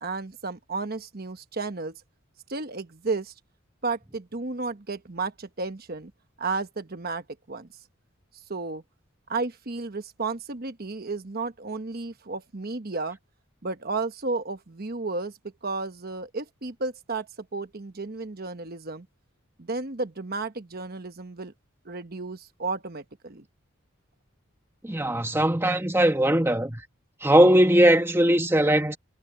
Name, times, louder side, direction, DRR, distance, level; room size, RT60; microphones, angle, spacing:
voice 1, 0.0-2.0 2.5-3.3 3.8-6.1 6.4-7.7 8.5-8.8 9.3-13.2 13.6-15.3 15.6-19.1 19.6-21.5 21.8-23.4, right 3 dB, 45° right, 1.1 m, -33 dB
voice 2, 24.8-26.8 27.2-29.0, right 1 dB, 10° right, 1.3 m, -20 dB
head